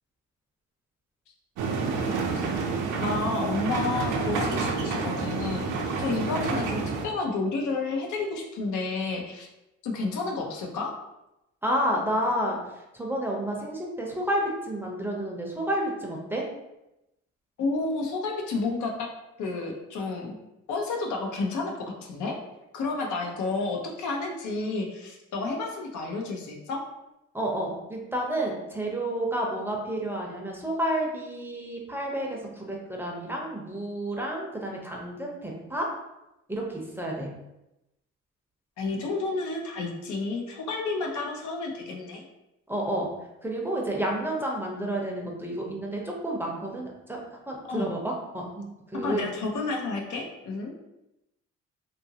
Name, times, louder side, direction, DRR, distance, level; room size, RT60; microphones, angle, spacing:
sound 1, 1.6-7.1, right 4 dB, 80° right, 0.5 m, -28 dB
voice 1, 3.0-5.6 6.0-9.5 9.8-10.9 17.6-19.1 19.4-20.4 20.7-22.4 22.7-26.8 38.8-42.2 47.7-48.0 49.0-50.7, left 3 dB, 75° left, 1 dB, 0.6 m, -31 dB
voice 2, 11.6-12.6 12.9-16.4 27.3-35.9 36.5-37.3 42.7-43.1 43.4-49.3, right 1 dB, 5° right, -2 dB, 0.6 m, -30 dB
2.8 x 2.5 x 2.7 m, 0.92 s
cardioid pair, 90°, 30 cm